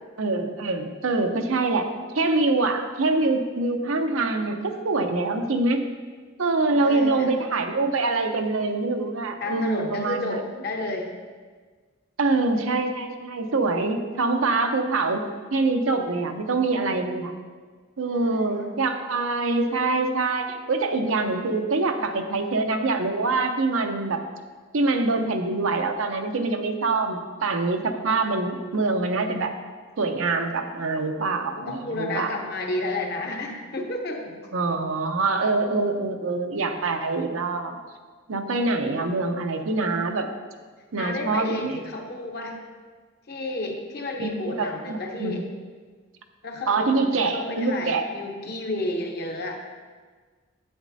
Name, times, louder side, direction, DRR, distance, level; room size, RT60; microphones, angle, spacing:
voice 1, 0.2-1.9 2.1-5.8 6.4-10.4 12.2-15.2 15.5-17.3 18.0-24.2 24.7-29.5 30.0-32.3 34.5-37.8 38.3-40.3 40.9-41.8 44.2-45.4 46.7-48.1, right 3 dB, 85° right, 5 dB, 0.7 m, -25 dB
voice 2, 6.7-7.3 9.4-11.2 18.1-18.8 31.6-34.4 41.0-42.6 43.3-45.5 46.4-49.6, left 2 dB, 50° left, 2 dB, 1.0 m, -31 dB
9.5 x 8.3 x 2.7 m, 1.5 s
head